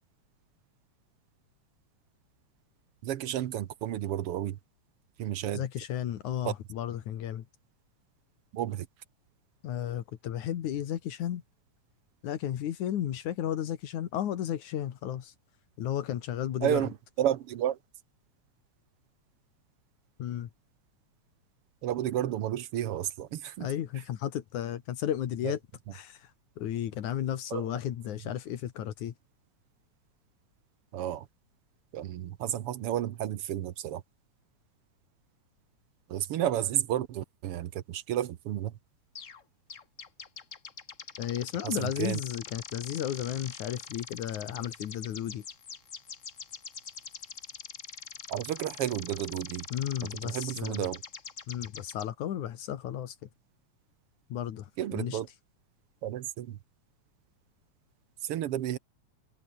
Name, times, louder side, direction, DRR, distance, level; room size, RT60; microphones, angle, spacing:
voice 1, 3.0-4.6 5.2-5.6 6.4-6.5 8.5-8.9 16.6-17.8 21.8-23.7 25.4-25.5 27.5-27.7 30.9-31.2 31.9-34.0 36.1-38.7 41.6-42.2 48.3-49.6 50.0-51.0 54.8-55.3 56.0-56.6 58.2-58.8, right 11 dB, 65° right, 1.6 m, -31 dB
voice 2, 5.5-7.4 9.6-11.4 12.2-15.3 15.8-16.8 20.2-20.5 23.6-25.6 25.9-26.2 26.6-29.1 41.2-45.4 49.7-50.9 51.5-53.1 54.3-55.2, left 11 dB, 80° left, 3.0 m, -33 dB
sound 1, 39.2-39.4 39.7-52.1, left 6 dB, 40° left, 1.2 m, -44 dB
omnidirectional pair, 3.4 m